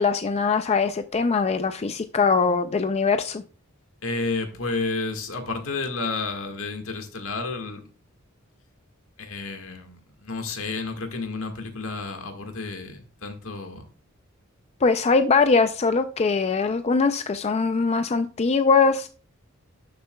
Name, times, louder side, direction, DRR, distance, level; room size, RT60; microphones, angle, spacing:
voice 1, 0.0-3.4 14.8-19.1, left 4 dB, 30° left, 9 dB, 0.4 m, -22 dB
voice 2, 4.0-7.8 9.2-13.8, left 3 dB, 70° left, 5 dB, 1.6 m, -31 dB
12.0 x 6.8 x 2.2 m, 0.39 s
head